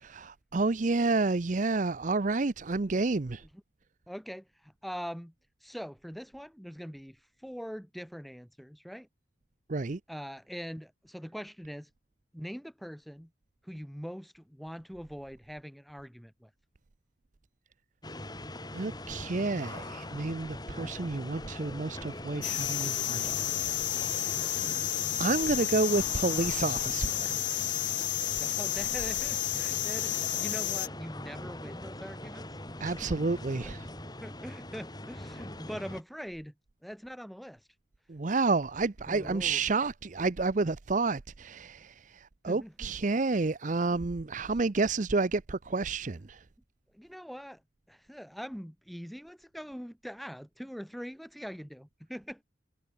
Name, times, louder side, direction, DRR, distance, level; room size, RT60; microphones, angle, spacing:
voice 1, 0.0-3.4 9.7-10.0 18.7-23.7 24.1-24.9 25.2-27.3 32.8-33.8 38.1-46.4, right 3 dB, 40° right, 0.6 m, -30 dB
voice 2, 4.1-5.3 5.6-9.1 10.1-11.9 12.3-13.3 13.6-16.5 28.4-32.6 33.0-33.1 33.6-33.7 34.2-36.5 36.8-37.7 39.1-39.6 42.4-42.9 43.8-44.0 44.4-44.5 46.9-47.6 47.9-52.4, equal, ahead, 4.8 m, -43 dB
sound 1, 18.0-36.0, left 1 dB, 20° left, 4.3 m, -42 dB
sound 2, 22.4-30.9, left 13 dB, 75° left, 1.9 m, -31 dB
head